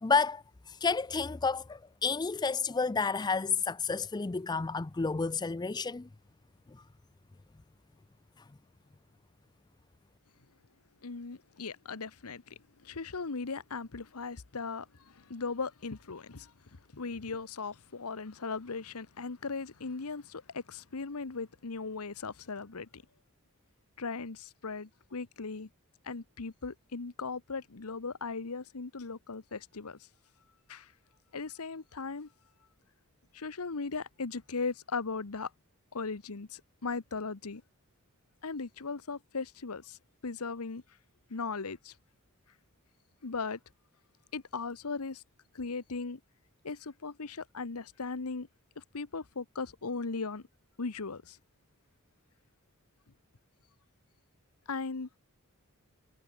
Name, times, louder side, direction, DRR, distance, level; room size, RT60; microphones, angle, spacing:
voice 1, 0.0-6.1 6.7-6.8 8.4-8.5, left 4 dB, 20° left, 0.4 m, -31 dB
voice 2, 11.0-12.5 12.8-16.5 16.9-23.0 24.0-25.7 26.0-30.0 30.7-30.9 31.3-32.3 33.3-35.5 35.9-37.6 38.4-40.0 40.2-40.8 41.3-41.9 43.2-43.6 44.3-45.2 45.5-46.2 46.6-48.5 48.8-50.4 50.8-51.4 54.7-55.1, left 4 dB, 75° left, 1.1 m, -38 dB
head